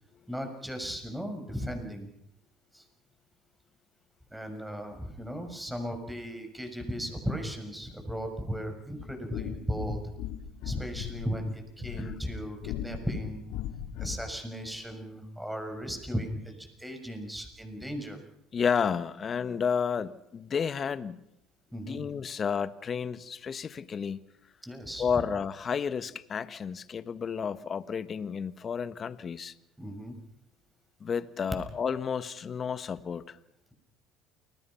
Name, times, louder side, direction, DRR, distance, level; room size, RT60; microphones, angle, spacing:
voice 1, 0.3-2.1 2.7-2.8 4.3-10.1 10.6-13.4 14.0-18.2 21.7-22.0 24.6-25.1 29.8-30.2, equal, 5° right, 6.6 m, -36 dB
sound 1, 8.9-14.3, left 11 dB, 75° left, 2.9 m, -39 dB
voice 2, 18.5-21.2 21.9-24.2 25.0-29.5 31.0-33.4, left 6 dB, 35° left, 1.4 m, -31 dB
29.0 x 20.5 x 5.8 m
supercardioid pair, 95°, 0 cm